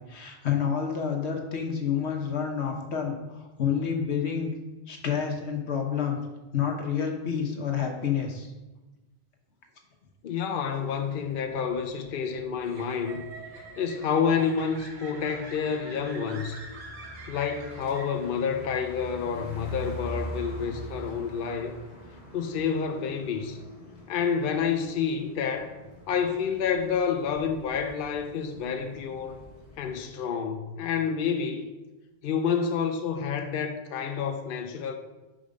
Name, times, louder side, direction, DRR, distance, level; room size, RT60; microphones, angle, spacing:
voice 1, 0.0-4.5 4.9-6.2 6.5-8.5, left 7 dB, 90° left, 1.3 m, -29 dB
voice 2, 10.2-13.3 13.8-16.7 17.3-21.7 22.3-23.6 24.1-25.8 26.1-29.4 29.8-31.7 32.2-34.9, left 6 dB, 60° left, 0.7 m, -29 dB
sound 1, 10.8-30.0, equal, 40° left, 1.3 m, -45 dB
sound 2, 11.0-18.6, right 3 dB, 50° right, 1.2 m, -46 dB
5.2 x 4.9 x 5.1 m
omnidirectional pair, 1.1 m